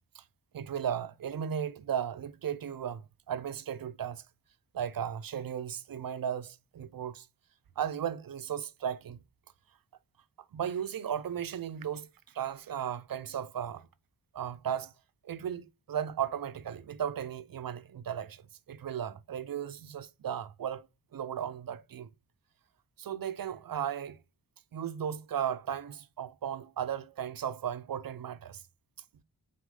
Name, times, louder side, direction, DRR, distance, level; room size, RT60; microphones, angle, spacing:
voice 1, 0.5-4.2 4.7-7.3 7.8-9.2 10.5-12.1 12.3-13.9 14.3-14.9 15.2-18.4 18.7-20.8 21.1-22.1 23.0-24.2 24.7-28.6, right 9 dB, 60° right, 0.6 m, -35 dB
4.8 x 4.2 x 5.4 m
wide cardioid pair, 115°, 40 cm